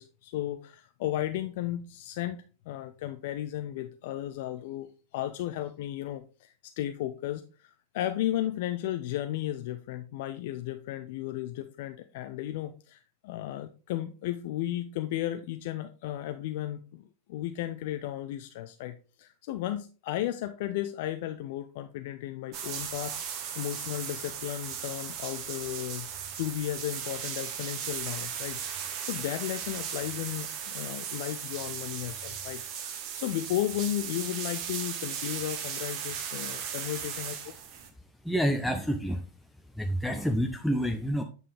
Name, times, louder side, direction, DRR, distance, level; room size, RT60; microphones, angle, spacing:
voice 1, 0.0-23.1 23.6-26.1 26.4-37.4, left 13 dB, 50° left, 8 dB, 0.5 m, -34 dB
sound 1, 22.5-37.9, right 8 dB, 40° right, 1.2 m, -37 dB
voice 2, 38.2-39.2 39.8-41.2, equal, ahead, 4 dB, 0.6 m, -28 dB
8.8 x 5.3 x 3.3 m, 0.36 s
figure-of-eight pair, 90°, 0 cm